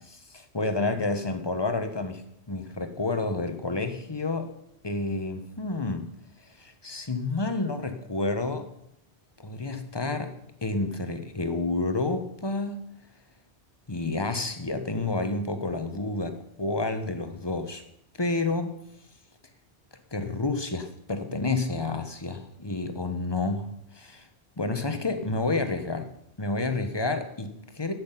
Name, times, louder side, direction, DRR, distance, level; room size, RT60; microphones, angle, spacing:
voice 1, 0.3-4.5 4.8-6.1 6.6-8.7 9.4-10.3 10.6-12.9 13.9-17.8 18.2-18.8 20.1-24.3 24.6-26.1 26.4-27.9, left 3 dB, 20° left, 8 dB, 1.3 m, -29 dB
14.0 x 6.4 x 9.2 m, 0.77 s
omnidirectional pair, 1.2 m